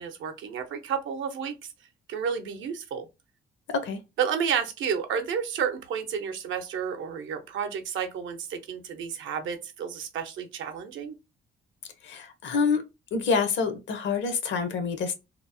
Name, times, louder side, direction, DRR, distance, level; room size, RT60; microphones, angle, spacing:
voice 1, 0.0-1.6 2.1-3.1 4.2-11.1, right 7 dB, 75° right, 0.6 m, -31 dB
voice 2, 12.0-12.8 13.1-15.2, left 5 dB, 70° left, 0.7 m, -27 dB
2.9 x 2.0 x 2.6 m
cardioid pair, 90°, 20 cm